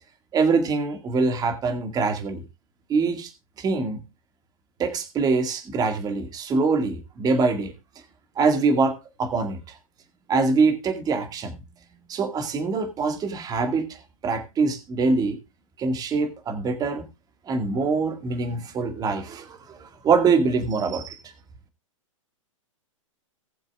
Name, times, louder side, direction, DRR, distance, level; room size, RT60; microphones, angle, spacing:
voice 1, 0.3-2.4 2.9-3.3 3.6-4.0 4.8-7.7 8.4-9.8 10.3-11.6 12.1-15.4 15.8-17.0 17.5-21.3, right 4 dB, 20° right, 1.9 m, -24 dB
19.0 x 7.3 x 2.3 m
hypercardioid pair, 125°, 17 cm